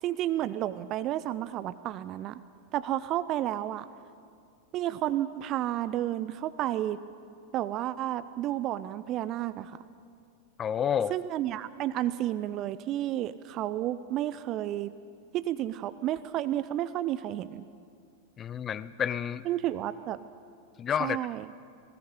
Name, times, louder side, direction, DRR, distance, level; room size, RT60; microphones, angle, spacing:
voice 1, 0.0-2.4 2.7-3.8 4.7-7.0 7.5-9.8 11.1-14.9 15.3-17.6 19.4-20.2 21.0-21.4, right 13 dB, 35° right, 14 dB, 0.6 m, -31 dB
voice 2, 10.6-11.1 18.4-19.4 20.8-21.2, left 8 dB, 25° left, 17 dB, 0.5 m, -29 dB
20.0 x 19.0 x 8.2 m, 2.3 s
figure-of-eight pair, 90°, 0 cm